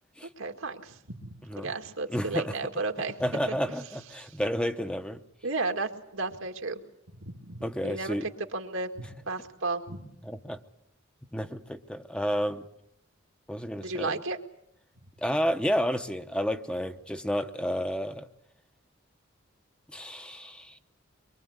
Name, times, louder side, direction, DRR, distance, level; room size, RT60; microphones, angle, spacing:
voice 1, 0.4-3.1 3.5-3.6 4.2-4.3 5.4-6.8 7.2-10.1 13.8-14.4, right 3 dB, 85° right, 2.2 m, -34 dB
voice 2, 2.1-2.6 3.2-5.2 7.6-8.2 10.2-10.6 11.3-12.7 13.5-14.2 15.2-18.3 19.9-20.8, equal, 5° left, 0.9 m, -31 dB
24.0 x 23.0 x 8.1 m
head